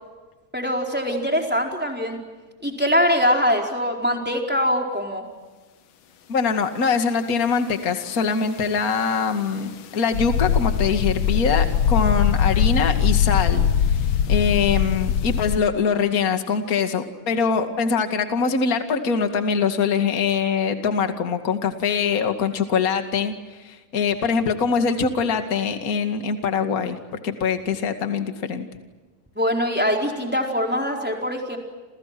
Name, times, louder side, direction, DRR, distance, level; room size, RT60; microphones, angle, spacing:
voice 1, 0.5-2.2 2.6-5.2 29.4-31.6, equal, 5° right, 1 dB, 4.2 m, -23 dB
voice 2, 6.3-13.6 13.9-14.0 14.3-23.3 23.6-27.0 27.2-28.7, left 5 dB, 30° left, 6 dB, 2.1 m, -23 dB
sound 1, 10.1-15.6, left 8 dB, 90° left, 1.1 m, -21 dB
29.5 x 29.5 x 6.1 m, 1.3 s
omnidirectional pair, 3.8 m